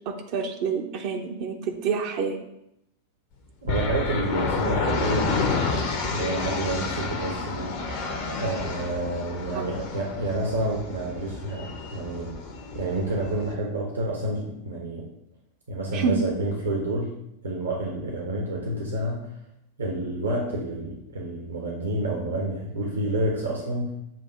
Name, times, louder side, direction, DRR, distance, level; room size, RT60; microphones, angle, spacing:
voice 1, 0.1-2.4 9.5-9.7 15.9-16.2, right 5 dB, 45° right, 3 dB, 0.7 m, -28 dB
voice 2, 3.6-5.5 6.1-7.7 8.3-12.4 12.7-15.1 15.7-17.2 17.4-19.3 19.8-23.9, right 1 dB, 70° right, -1 dB, 1.1 m, -29 dB
sound 1, 3.7-13.5, left 3 dB, 50° left, 1.0 m, -30 dB
7.4 x 2.8 x 5.5 m, 0.82 s
figure-of-eight pair, 90°, 0 cm